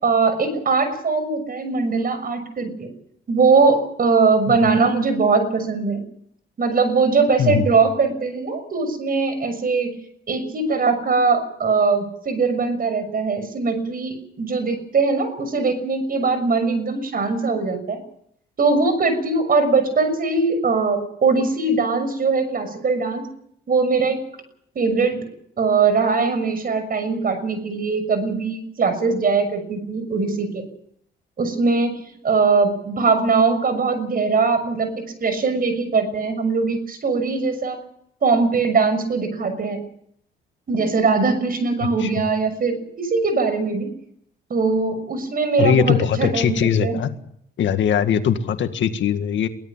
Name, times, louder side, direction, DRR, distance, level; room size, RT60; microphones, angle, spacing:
voice 1, 0.0-2.9 3.3-6.0 6.6-9.9 10.3-18.0 18.6-23.3 23.7-24.2 24.7-25.2 25.6-30.6 31.4-37.8 38.2-39.8 40.7-43.9 44.5-47.0, right 4 dB, 45° right, 11 dB, 6.3 m, -21 dB
voice 2, 45.6-47.1 47.6-49.5, left 8 dB, 70° left, 8 dB, 2.0 m, -20 dB
23.0 x 17.0 x 7.4 m, 0.70 s
cardioid pair, 90°, 20 cm